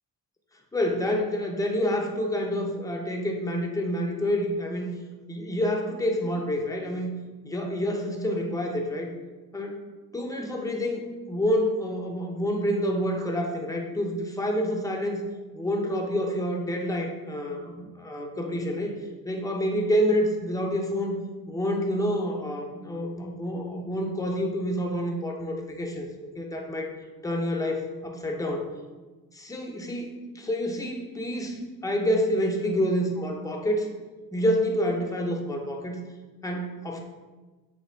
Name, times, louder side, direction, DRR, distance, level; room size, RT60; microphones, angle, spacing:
voice 1, 0.7-4.9 5.3-7.1 7.4-9.1 9.5-9.8 10.1-15.2 15.5-19.0 19.2-21.2 21.5-26.1 26.3-26.9 27.2-28.7 29.3-33.9 34.3-36.0 36.4-37.0, equal, 10° left, 1 dB, 0.6 m, -28 dB
3.2 x 2.2 x 4.3 m, 1.2 s
cardioid pair, 80°, 38 cm